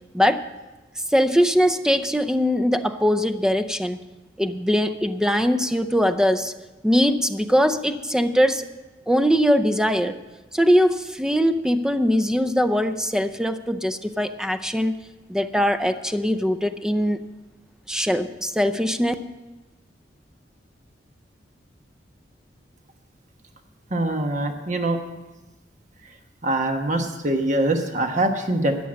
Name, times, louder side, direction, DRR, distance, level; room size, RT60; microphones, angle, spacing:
voice 1, 0.1-0.4 1.1-4.0 4.4-6.5 6.8-8.6 9.1-10.2 10.5-15.0 15.3-17.2 17.9-19.1, equal, 5° right, 10 dB, 0.5 m, -21 dB
voice 2, 23.9-25.0 26.4-28.8, right 1 dB, 45° right, 5 dB, 1.2 m, -23 dB
13.5 x 9.2 x 6.4 m, 1.2 s
head